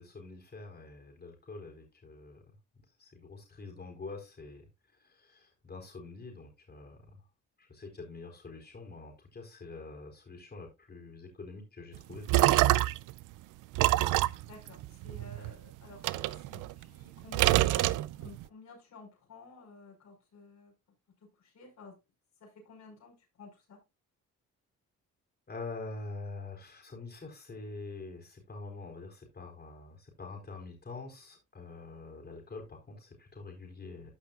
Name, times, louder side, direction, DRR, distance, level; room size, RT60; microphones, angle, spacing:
voice 1, 0.0-2.4 3.0-4.7 5.0-7.2 7.6-12.8 25.5-34.1, left 3 dB, 35° left, 4.5 m, -45 dB
sound 1, 12.0-13.1 13.7-15.5 16.0-17.0 17.3-18.4, right 17 dB, 90° right, 0.5 m, -26 dB
voice 2, 14.4-20.7 21.4-22.0 22.4-23.8, left 3 dB, 65° left, 5.1 m, -52 dB
14.0 x 5.9 x 2.4 m
cardioid pair, 90°, 30 cm